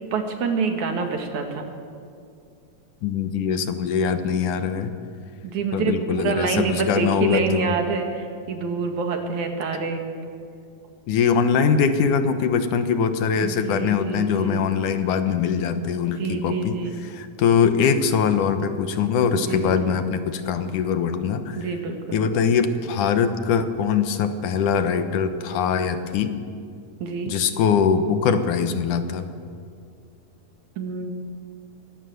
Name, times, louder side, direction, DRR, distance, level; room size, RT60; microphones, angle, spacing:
voice 1, 0.1-1.7 5.4-10.1 13.4-14.6 16.2-17.0 19.5-20.0 21.6-22.3 27.0-27.3 30.8-31.1, right 5 dB, 65° right, 4 dB, 3.3 m, -27 dB
voice 2, 3.0-4.9 5.7-7.7 11.1-21.6 22.1-26.4 27.3-29.3, left 6 dB, 75° left, 9 dB, 2.6 m, -22 dB
23.0 x 18.0 x 7.9 m, 2.3 s
omnidirectional pair, 3.7 m